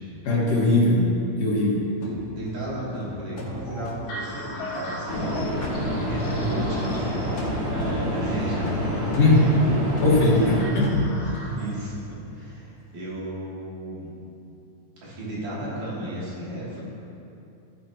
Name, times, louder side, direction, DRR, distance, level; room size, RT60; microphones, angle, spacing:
voice 1, 0.2-1.1 1.4-1.8 9.2-9.5 10.0-11.2, left 2 dB, 55° left, -4 dB, 2.6 m, -19 dB
voice 2, 1.9-5.3 6.1-9.1 9.4-10.7 11.2-14.1 15.0-16.8, right 1 dB, 85° right, -8 dB, 4.4 m, -34 dB
sound 1, 2.0-5.3 5.6-7.1 7.4-11.5, right 1 dB, 40° left, 1.5 m, -38 dB
sound 2, 3.6-11.8, left 1 dB, 80° left, 3.3 m, -39 dB
sound 3, 5.1-10.6, equal, 50° right, 3.3 m, -28 dB
15.0 x 9.3 x 2.9 m, 2.7 s
omnidirectional pair, 3.5 m